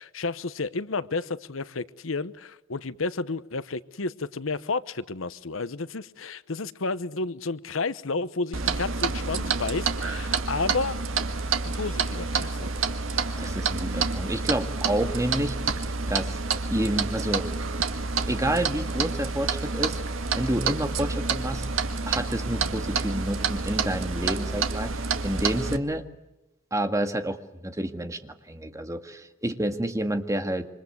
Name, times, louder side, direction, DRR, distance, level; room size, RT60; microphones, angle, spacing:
voice 1, 0.0-11.0 11.7-12.7, left 3 dB, 85° left, 1.0 m, -31 dB
Clock, 8.5-25.8, right 4 dB, 80° right, 1.9 m, -28 dB
voice 2, 13.4-16.4 16.7-17.5 18.3-20.0 20.4-21.7 22.1-26.0 26.7-30.7, right 1 dB, 15° right, 1.8 m, -29 dB
27.5 x 25.5 x 8.1 m
head